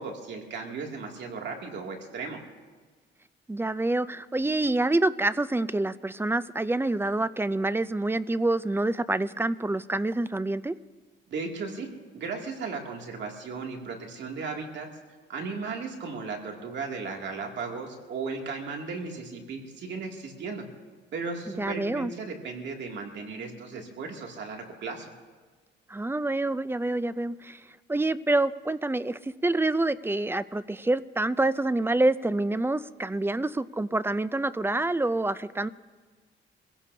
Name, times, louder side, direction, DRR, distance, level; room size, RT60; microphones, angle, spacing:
voice 1, 0.0-2.4 11.3-11.9 12.1-14.9 15.3-20.6 21.1-25.1, right 4 dB, 65° right, 1 dB, 2.6 m, -36 dB
voice 2, 3.5-10.8 21.6-22.1 25.9-27.6 27.9-35.7, right 2 dB, 10° right, 15 dB, 0.5 m, -27 dB
26.0 x 16.0 x 2.8 m, 1.4 s
cardioid pair, 90°, 20 cm